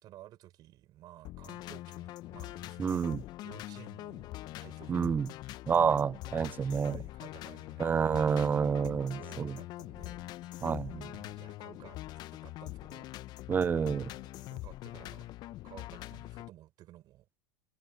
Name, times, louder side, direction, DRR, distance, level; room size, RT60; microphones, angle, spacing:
voice 1, 0.0-3.1 3.4-4.3 4.6-5.0 6.3-10.2 11.0-13.1 13.8-15.3 15.6-17.3, right 14 dB, 45° right, 4.8 m, -54 dB
sound 1, 1.2-16.5, left 16 dB, 45° left, 0.9 m, -43 dB
voice 2, 2.8-3.2 4.9-5.3 5.7-7.0 7.8-9.6 10.6-11.1 13.5-14.1, right 6 dB, 20° right, 0.4 m, -29 dB
hypercardioid pair, 95°, 10 cm